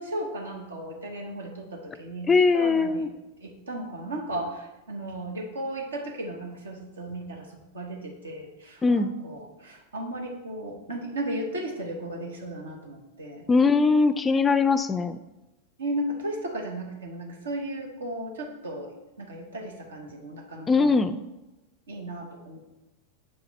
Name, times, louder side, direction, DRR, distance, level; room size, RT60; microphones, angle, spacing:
voice 1, 0.0-3.1 3.4-13.4 15.8-18.9 19.2-21.0 21.9-22.6, right 1 dB, 80° right, 2 dB, 1.1 m, -35 dB
voice 2, 2.3-3.1 8.8-9.1 13.5-15.2 20.7-21.2, left 4 dB, 20° left, 12 dB, 0.3 m, -21 dB
7.2 x 4.8 x 3.2 m, 0.99 s
figure-of-eight pair, 95°, 0 cm